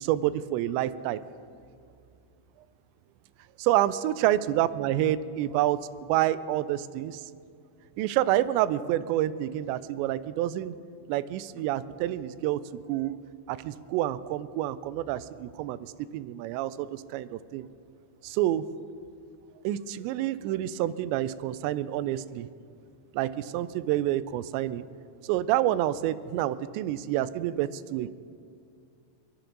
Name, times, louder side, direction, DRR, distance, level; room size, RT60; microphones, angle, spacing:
voice 1, 0.0-1.2 3.6-5.8 6.1-7.2 8.0-10.8 11.1-12.6 12.9-13.2 13.5-17.7 18.2-18.6 19.6-22.5 23.1-24.9 25.2-28.1, right 13 dB, 85° right, 15 dB, 2.7 m, -28 dB
29.5 x 10.5 x 3.9 m, 2.3 s
omnidirectional pair, 5.3 m